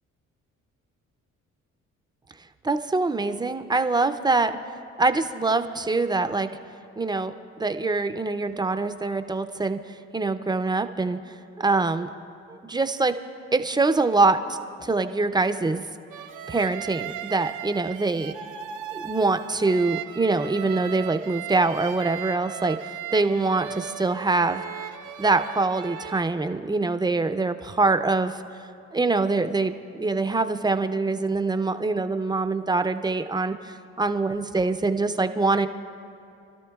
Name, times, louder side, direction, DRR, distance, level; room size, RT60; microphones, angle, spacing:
voice 1, 2.6-4.6 5.0-6.5 7.0-7.3 7.6-9.8 10.1-11.2 11.6-12.1 12.5-13.2 13.5-15.8 16.5-18.3 18.9-22.8 23.1-24.6 25.2-28.4 28.9-35.7, right 3 dB, 15° right, 9 dB, 0.5 m, -24 dB
sound 1, 16.1-26.2, right 10 dB, 80° right, 0.6 m, -37 dB
27.0 x 13.0 x 2.3 m, 2.6 s
cardioid pair, 90°, 30 cm